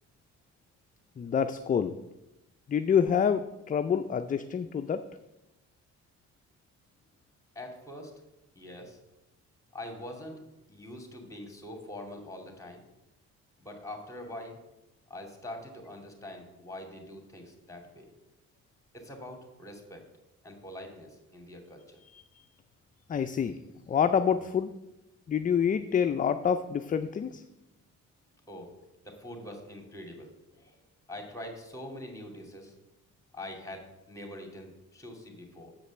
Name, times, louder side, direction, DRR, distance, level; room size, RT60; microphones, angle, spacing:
voice 1, 1.2-2.0 2.7-5.0 22.1-22.2 23.1-23.6 23.9-24.7 25.3-27.4, left 7 dB, 30° left, 9 dB, 0.4 m, -27 dB
voice 2, 7.5-8.1 8.6-9.0 9.7-12.8 13.6-14.6 15.1-18.1 18.9-20.1 20.4-22.0 28.5-28.7 29.0-30.8 31.1-32.7 33.3-35.7, left 1 dB, 10° left, 3 dB, 2.3 m, -44 dB
7.3 x 5.2 x 6.9 m, 0.95 s
cardioid pair, 90°, 30 cm